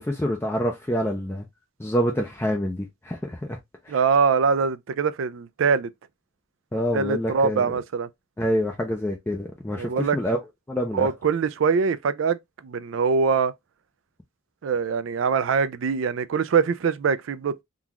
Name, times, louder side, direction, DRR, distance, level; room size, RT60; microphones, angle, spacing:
voice 1, 0.0-1.5 1.8-3.6 3.8-4.0 6.7-7.7 8.4-10.4 10.7-11.1, equal, 10° left, 0.4 m, -27 dB
voice 2, 3.9-5.9 6.9-8.1 9.8-10.2 10.9-13.5 14.6-17.6, right 5 dB, 70° right, 0.4 m, -23 dB
3.8 x 2.3 x 2.9 m
head